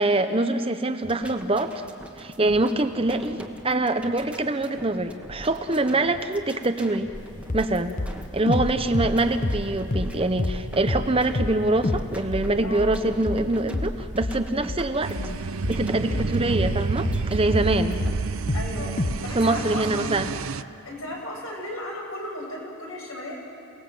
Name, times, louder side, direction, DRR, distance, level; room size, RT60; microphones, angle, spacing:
voice 1, 0.0-1.8 2.2-7.1 7.5-8.0 8.3-15.2 15.7-18.0 19.3-20.3, right 2 dB, 25° right, 8 dB, 0.8 m, -24 dB
sound 1, 1.0-18.4, right 1 dB, 5° right, 1.3 m, -43 dB
sound 2, 7.1-7.2 7.5-7.7 8.0-10.1 10.4-10.6 10.9-11.1 11.3-11.6 11.8-12.1 12.3-17.8 18.0-18.7 19.0-19.2, left 2 dB, 35° left, 0.9 m, -27 dB
sound 3, 15.0-20.6, right 4 dB, 70° right, 0.5 m, -30 dB
voice 2, 18.5-18.9 19.2-20.2 20.8-23.4, left 1 dB, 70° left, -1 dB, 7.0 m, -35 dB
29.0 x 19.0 x 7.8 m, 2.6 s
head